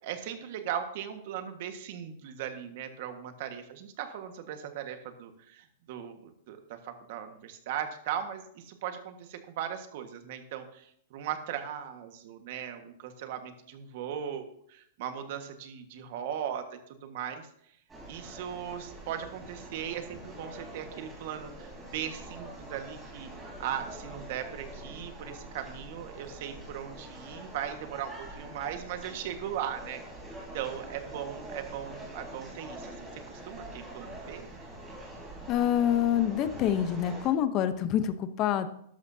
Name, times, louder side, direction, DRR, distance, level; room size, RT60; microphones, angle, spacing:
voice 1, 0.0-17.5 18.1-30.0 30.5-34.5, right 9 dB, 55° right, 7 dB, 1.6 m, -38 dB
sound 1, 17.9-37.3, right 1 dB, 15° right, 3.7 m, -45 dB
voice 2, 35.5-38.7, left 10 dB, 35° left, 11 dB, 0.9 m, -26 dB
13.0 x 11.5 x 2.8 m, 0.70 s
hypercardioid pair, 150°, 0 cm